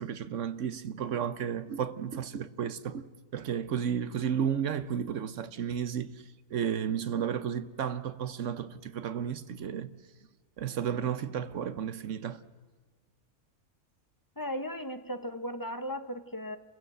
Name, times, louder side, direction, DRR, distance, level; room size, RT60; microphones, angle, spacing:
voice 1, 0.0-3.0 3.3-6.1 6.5-9.9 10.6-12.4, right 8 dB, 60° right, 1.1 m, -33 dB
voice 2, 14.4-16.6, equal, 15° left, 1.0 m, -36 dB
29.0 x 15.5 x 7.8 m
omnidirectional pair, 1.5 m